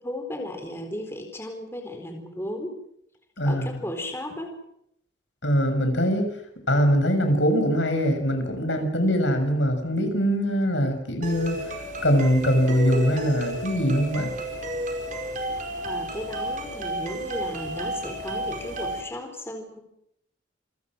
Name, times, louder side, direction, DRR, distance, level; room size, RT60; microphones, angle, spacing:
voice 1, 0.0-2.8 3.5-4.6 15.8-19.8, left 1 dB, 15° left, 4 dB, 4.2 m, -35 dB
voice 2, 3.4-3.7 5.4-6.3 6.7-11.8 12.0-14.3, equal, 75° left, 6 dB, 6.7 m, -22 dB
sound 1, 11.2-19.0, right 1 dB, 40° right, 4.9 m, -32 dB
28.0 x 24.5 x 6.3 m, 0.75 s
head